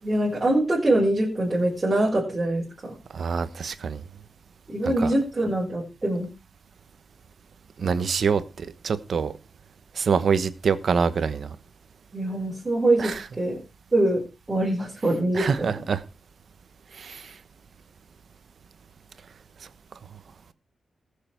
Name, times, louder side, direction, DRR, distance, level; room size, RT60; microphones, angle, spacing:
voice 1, 0.0-2.9 4.7-6.3 12.1-13.6 13.9-14.2 14.5-15.7, right 1 dB, 15° right, 4.5 m, -24 dB
voice 2, 3.1-4.0 4.8-5.1 7.8-9.3 9.9-11.5 13.0-13.3 15.3-16.0 16.9-17.4, right 6 dB, 50° right, 1.1 m, -25 dB
20.0 x 6.8 x 4.5 m
wide cardioid pair, 180°, 0 cm